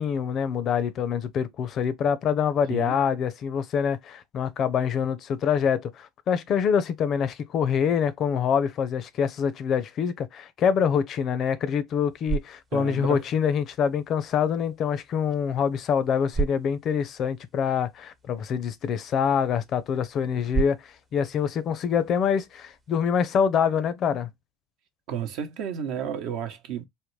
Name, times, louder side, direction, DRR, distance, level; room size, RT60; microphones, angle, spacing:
voice 1, 0.0-24.3, left 7 dB, 50° left, 0.5 m, -25 dB
sound 1, 11.9-23.0, right 5 dB, 25° right, 0.6 m, -37 dB
voice 2, 12.7-13.2 25.1-26.9, right 8 dB, 65° right, 0.8 m, -32 dB
3.6 x 2.2 x 3.1 m
supercardioid pair, 90°, 0 cm